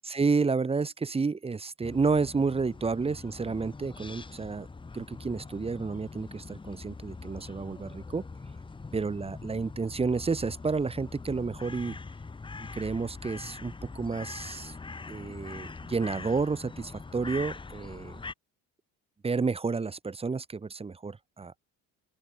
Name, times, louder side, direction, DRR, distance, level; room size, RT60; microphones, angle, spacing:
voice 1, 0.1-4.7 4.9-8.2 8.9-12.0 12.7-14.7 15.1-18.2 19.2-21.6, right 4 dB, 15° right, 5.4 m, -30 dB
sound 1, 1.8-18.3, left 4 dB, 15° left, 5.1 m, -43 dB
open air
cardioid pair, 165°, 35 cm